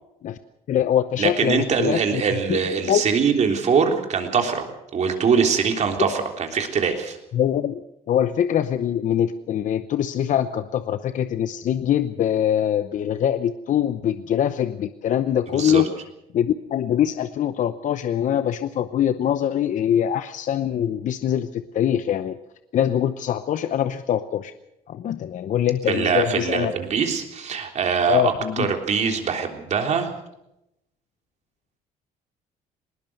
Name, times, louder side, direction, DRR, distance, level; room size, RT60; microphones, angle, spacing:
voice 1, 0.7-2.6 2.9-3.0 7.3-7.8 8.1-15.9 16.3-22.4 22.7-24.5 24.9-26.7 28.1-28.7, left 10 dB, 55° left, 11 dB, 0.8 m, -23 dB
voice 2, 1.2-4.7 4.9-7.2 15.5-15.8 25.9-28.3 28.6-30.1, right 6 dB, 45° right, 3 dB, 3.5 m, -22 dB
20.5 x 19.0 x 6.6 m, 0.85 s
cardioid pair, 105°, 16 cm